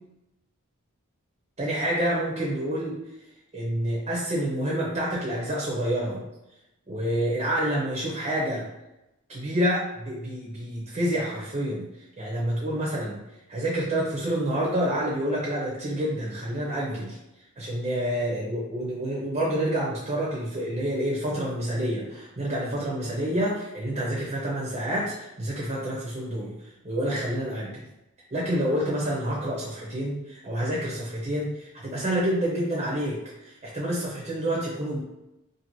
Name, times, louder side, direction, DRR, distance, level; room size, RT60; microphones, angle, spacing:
voice 1, 1.6-3.0 3.5-6.3 6.9-8.7 9.3-11.9 12.2-13.2 13.5-17.2 17.6-27.8 28.3-35.0, right 1 dB, 30° right, -5 dB, 0.5 m, -28 dB
2.6 x 2.5 x 3.0 m, 0.92 s
head